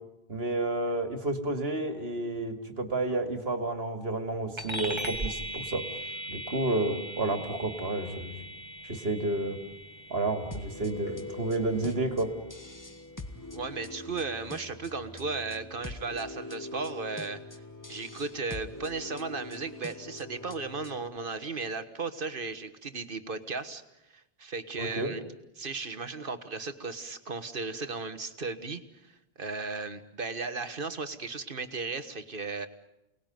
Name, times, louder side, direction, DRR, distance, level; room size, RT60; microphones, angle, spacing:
voice 1, 0.3-5.8 6.3-8.4 8.8-9.6 10.1-12.3 24.8-25.1, right 2 dB, 75° right, 6 dB, 2.7 m, -30 dB
sound 1, 4.6-14.4, right 1 dB, 25° right, 1.9 m, -40 dB
sound 2, 10.5-21.2, left 2 dB, 20° left, 1.6 m, -43 dB
voice 2, 13.5-17.4 17.9-23.8 24.1-25.2 25.6-29.1 29.4-32.7, right 4 dB, 55° right, 10 dB, 1.7 m, -35 dB
29.5 x 20.0 x 9.3 m, 0.93 s
omnidirectional pair, 1.0 m